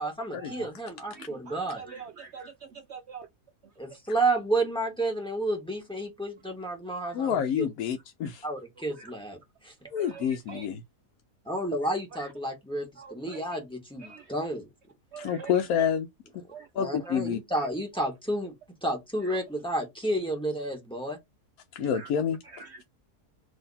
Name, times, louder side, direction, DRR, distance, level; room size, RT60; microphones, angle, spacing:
voice 1, 0.0-1.8 3.8-7.7 8.4-9.7 11.4-14.7 16.7-18.5 18.8-21.2, right 1 dB, 5° left, 1.3 m, -31 dB
voice 2, 1.1-2.5 2.9-3.3 9.0-9.1 10.0-10.7 12.2-12.3 13.0-13.4 14.0-14.3 15.1-15.5 16.5-16.7 19.2-19.4 21.8-22.1 22.5-22.8, right 5 dB, 75° right, 0.6 m, -44 dB
voice 3, 7.1-8.5 9.9-10.8 15.2-16.1 16.7-17.4 21.7-22.4, left 8 dB, 70° left, 1.0 m, -28 dB
3.8 x 2.9 x 4.0 m
omnidirectional pair, 1.7 m